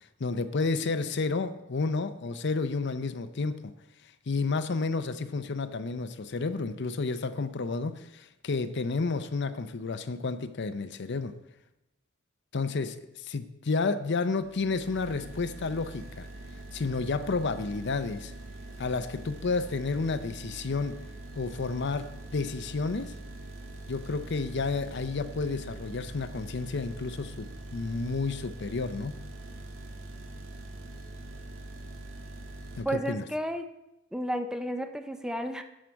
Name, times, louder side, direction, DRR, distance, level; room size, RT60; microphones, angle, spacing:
voice 1, 0.2-3.6 4.3-11.3 12.5-16.3 16.7-18.3 18.8-21.0 21.4-22.1 22.3-23.1 23.9-29.2 32.8-33.2, left 4 dB, 60° left, 11 dB, 0.6 m, -31 dB
sound 1, 14.4-32.8, right 2 dB, 80° right, 1.4 m, -43 dB
voice 2, 32.8-33.7 34.1-35.6, right 1 dB, 5° right, 8 dB, 0.5 m, -32 dB
11.5 x 7.4 x 4.6 m, 0.92 s
head